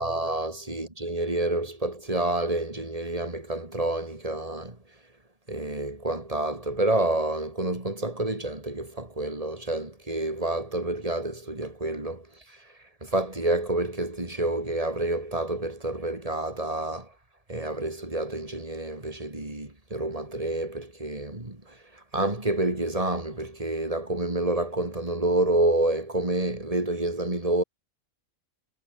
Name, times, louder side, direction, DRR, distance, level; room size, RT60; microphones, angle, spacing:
voice 1, 0.0-4.8 5.5-12.6 13.0-17.1 17.5-27.6, right 2 dB, 25° right, 4.0 m, -28 dB
omnidirectional pair, 1.4 m